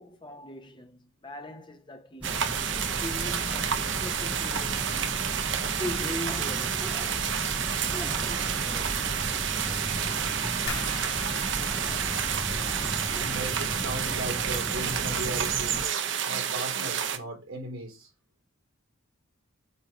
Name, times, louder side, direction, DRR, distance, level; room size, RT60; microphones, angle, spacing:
voice 1, 0.0-5.2 5.8-7.0, left 1 dB, 20° left, 0.8 m, -40 dB
sound 1, 2.2-15.9, right 1 dB, 5° right, 0.4 m, -36 dB
sound 2, 2.2-17.2, right 8 dB, 55° right, 0.8 m, -30 dB
sound 3, 10.7-13.5 13.8-14.5 14.9-15.3 15.7-15.9, left 4 dB, 70° left, 2.5 m, -42 dB
voice 2, 13.1-15.9 16.2-18.1, right 1 dB, 75° right, 4.0 m, -37 dB
8.4 x 2.8 x 6.0 m
head